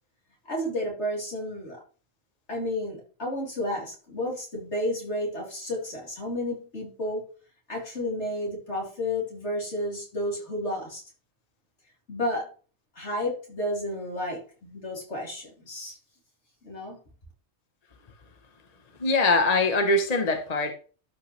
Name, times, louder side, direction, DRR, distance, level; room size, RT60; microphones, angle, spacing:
voice 1, 0.5-1.8 2.5-7.2 7.7-11.0 12.1-12.5 13.0-16.0 16.6-17.0, left 1 dB, 60° left, 3.8 m, -31 dB
voice 2, 19.0-20.7, left 2 dB, 35° left, 1.0 m, -22 dB
12.5 x 5.5 x 3.2 m
omnidirectional pair, 1.3 m